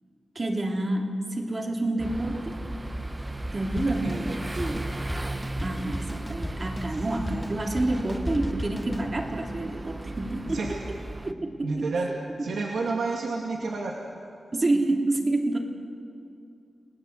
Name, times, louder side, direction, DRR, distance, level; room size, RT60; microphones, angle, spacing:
voice 1, 0.3-2.5 3.5-4.9 5.6-10.8 11.2-12.0 14.5-15.6, right 2 dB, 35° right, 2 dB, 3.0 m, -28 dB
sound 1, 2.0-11.3, right 1 dB, 20° right, 1.0 m, -36 dB
Drum kit, 3.8-9.1, left 1 dB, 10° left, 1.3 m, -37 dB
voice 2, 3.9-4.7 10.5-10.7 11.6-12.1 12.4-14.0, right 3 dB, 85° right, 0 dB, 2.3 m, -30 dB
29.5 x 19.0 x 8.1 m, 2.5 s
wide cardioid pair, 85°, 0 cm